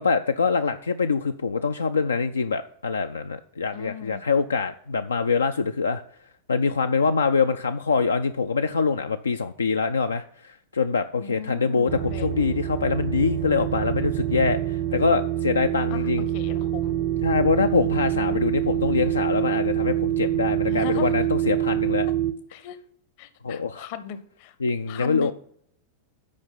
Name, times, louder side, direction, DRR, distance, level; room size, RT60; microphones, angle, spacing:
voice 1, 0.0-6.0 6.5-16.3 17.2-22.1 23.4-23.9 24.6-25.3, left 5 dB, 75° left, 8 dB, 0.3 m, -24 dB
voice 2, 3.7-4.2 11.2-12.3 15.9-16.0 16.3-17.0 18.1-18.5 20.6-21.1 22.5-22.8 23.2-24.5 24.9-25.3, left 10 dB, 45° left, 13 dB, 0.8 m, -37 dB
sound 1, 11.9-22.3, right 12 dB, 40° right, 0.6 m, -26 dB
8.4 x 5.1 x 5.6 m, 0.65 s
figure-of-eight pair, 90°, 0 cm